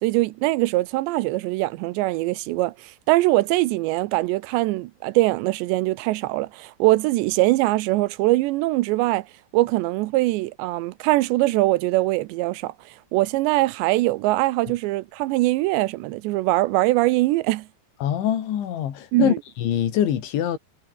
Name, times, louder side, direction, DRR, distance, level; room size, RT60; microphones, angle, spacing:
voice 1, 0.0-9.3 9.5-12.7 13.1-17.7 19.1-19.4, right 19 dB, 85° right, 2.9 m, -22 dB
voice 2, 18.0-20.6, left 10 dB, 90° left, 5.0 m, -24 dB
omnidirectional pair, 5.2 m